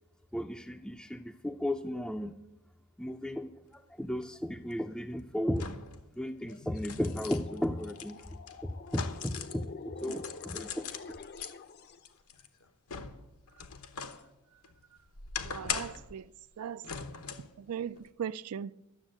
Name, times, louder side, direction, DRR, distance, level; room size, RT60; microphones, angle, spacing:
voice 1, 0.3-2.4 3.0-5.7 6.1-10.9, left 1 dB, 5° left, 0.4 m, -35 dB
sound 1, 4.2-4.3 5.5-6.0 6.5-9.6 10.0-11.5 12.1-14.2 14.6-16.1 16.8-17.5 18.0-18.1, left 6 dB, 85° left, 1.1 m, -41 dB
sound 2, 6.3-12.1, left 4 dB, 45° left, 0.6 m, -48 dB
voice 2, 15.4-16.3 16.6-16.8 17.6-18.7, right 8 dB, 85° right, 0.4 m, -38 dB
12.5 x 7.2 x 8.8 m
head